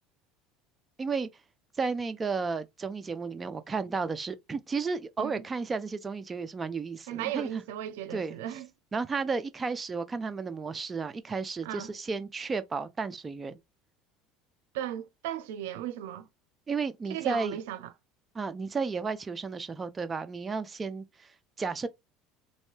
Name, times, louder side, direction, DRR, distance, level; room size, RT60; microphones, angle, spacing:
voice 1, 1.0-1.3 1.8-7.5 8.1-8.3 8.9-13.6 16.7-17.6 18.3-21.3 21.6-21.9, right 4 dB, 25° right, 0.5 m, -33 dB
voice 2, 7.1-8.7 11.6-11.9 14.7-16.3 17.1-17.9, right 11 dB, 85° right, 0.6 m, -36 dB
3.0 x 2.7 x 3.2 m
supercardioid pair, 100°, 0 cm